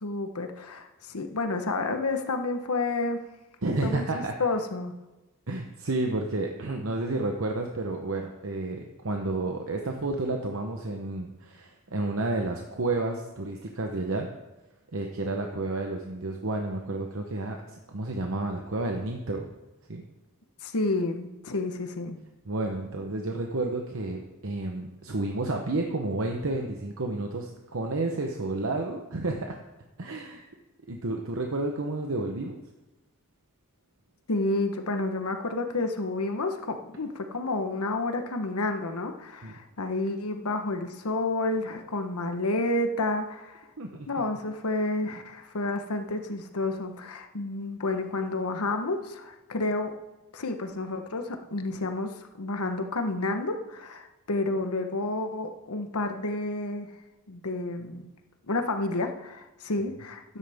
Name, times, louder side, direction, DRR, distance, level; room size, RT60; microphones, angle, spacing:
voice 1, 0.0-3.2 3.8-4.9 20.6-22.2 34.3-43.6 44.1-49.9 50.3-56.9 57.3-58.0 58.5-60.4, left 2 dB, 90° left, 6 dB, 1.1 m, -30 dB
voice 2, 3.6-4.3 5.5-14.3 14.9-19.5 19.9-20.0 22.4-29.6 30.0-30.4 30.9-32.6 39.4-39.5 43.8-44.2, right 2 dB, 65° right, 3 dB, 0.9 m, -31 dB
13.0 x 9.8 x 3.6 m, 1.1 s
head